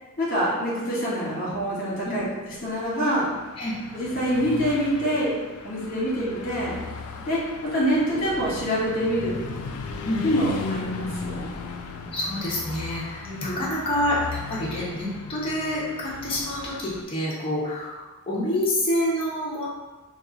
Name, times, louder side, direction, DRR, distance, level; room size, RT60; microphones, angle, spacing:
voice 1, 0.2-2.2 2.6-3.3 3.9-5.4 5.6-6.8 7.3-9.3 10.2-11.6 13.2-13.7, equal, 40° left, -6 dB, 1.3 m, -25 dB
Car passing by / Truck, 2.6-17.0, left 4 dB, 85° left, 0.3 m, -36 dB
voice 2, 12.1-19.7, left 1 dB, 25° left, -7 dB, 0.7 m, -27 dB
2.9 x 2.3 x 3.7 m, 1.2 s
head